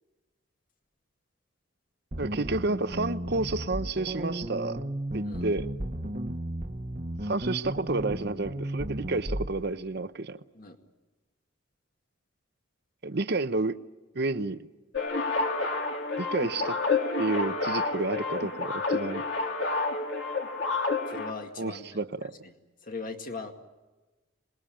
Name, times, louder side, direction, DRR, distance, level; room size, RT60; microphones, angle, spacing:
sound 1, 2.1-9.5, right 1 dB, 40° right, 1.2 m, -34 dB
voice 1, 2.2-4.8 5.1-5.7 7.2-10.4 13.0-13.8 14.1-14.7 16.2-16.8 17.2-19.2 21.6-22.3, right 3 dB, 55° right, 12 dB, 0.8 m, -30 dB
sound 2, 14.9-21.3, left 3 dB, 65° left, 3.0 m, -29 dB
voice 2, 21.1-21.9 22.4-22.5 22.8-23.5, left 3 dB, 45° left, 4 dB, 2.1 m, -39 dB
26.5 x 20.5 x 8.8 m, 1.2 s
head